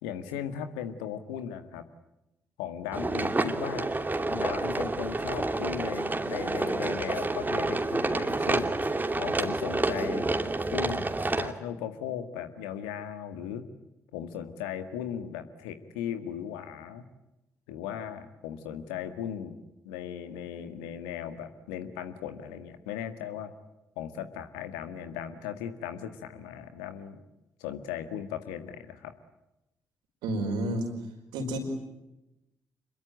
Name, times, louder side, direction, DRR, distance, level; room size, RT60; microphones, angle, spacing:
voice 1, 0.0-1.8 2.6-3.9 4.3-8.7 9.2-10.3 10.7-11.1 11.4-13.6 14.1-17.0 17.7-19.5 19.9-23.5 24.0-27.2 27.6-29.1, left 9 dB, 75° left, 9 dB, 1.8 m, -37 dB
sound 1, 2.9-11.5, right 2 dB, 25° right, 2.8 m, -29 dB
voice 2, 30.2-30.9 31.3-31.6, right 1 dB, 75° right, 3 dB, 5.1 m, -30 dB
27.0 x 22.0 x 9.1 m, 0.93 s
hypercardioid pair, 40°, 8 cm